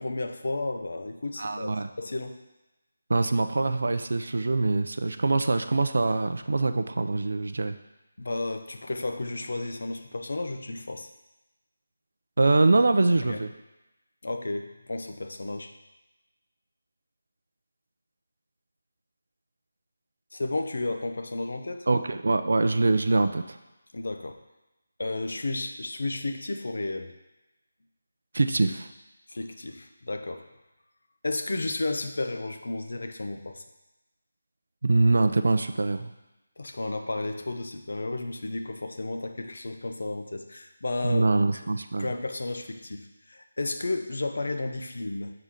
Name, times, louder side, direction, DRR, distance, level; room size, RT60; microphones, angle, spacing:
voice 1, 0.0-2.4 8.2-11.1 13.2-13.4 14.2-15.7 20.3-21.8 23.9-24.4 25.0-27.1 29.3-30.4 31.2-33.6 36.6-41.3 42.0-45.3, left 2 dB, 70° left, 6 dB, 0.7 m, -32 dB
voice 2, 1.4-1.9 3.1-7.8 12.4-13.5 21.9-23.6 28.3-28.9 34.8-36.1 41.0-42.1, right 3 dB, 70° right, 9 dB, 0.5 m, -24 dB
4.8 x 3.9 x 5.6 m, 1.0 s
figure-of-eight pair, 170°, 0 cm